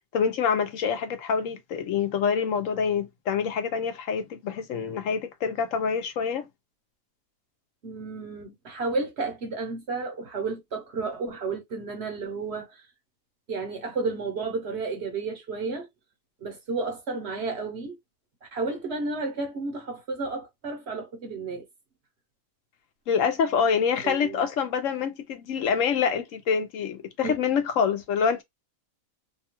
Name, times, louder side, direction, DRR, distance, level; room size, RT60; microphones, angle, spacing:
voice 1, 0.1-6.5 23.1-28.4, left 6 dB, 70° left, 0.9 m, -26 dB
voice 2, 7.8-12.8 13.5-15.9 16.4-18.0 18.5-21.6 24.0-24.4 27.2-27.4, right 3 dB, 55° right, 0.8 m, -32 dB
2.7 x 2.2 x 2.9 m
omnidirectional pair, 1.5 m